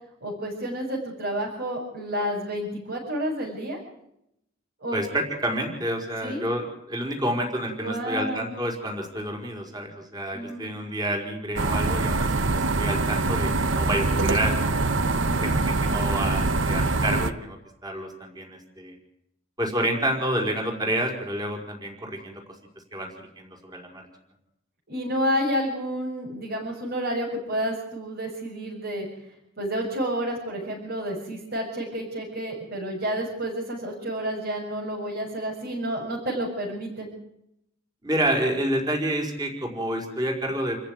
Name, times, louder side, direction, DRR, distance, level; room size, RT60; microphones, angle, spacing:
voice 1, 0.2-3.8 4.8-5.0 6.2-6.4 7.8-8.5 10.3-10.7 15.1-15.4 24.9-29.1 29.6-37.1, equal, 55° right, -3 dB, 7.4 m, -30 dB
voice 2, 4.9-14.7 15.3-15.5 15.8-19.0 19.6-22.4 22.9-24.1 38.0-40.8, right 1 dB, 20° right, 1 dB, 5.1 m, -29 dB
sound 1, 11.6-17.3, right 3 dB, 75° right, 1.2 m, -24 dB
29.0 x 15.0 x 9.7 m, 0.80 s
head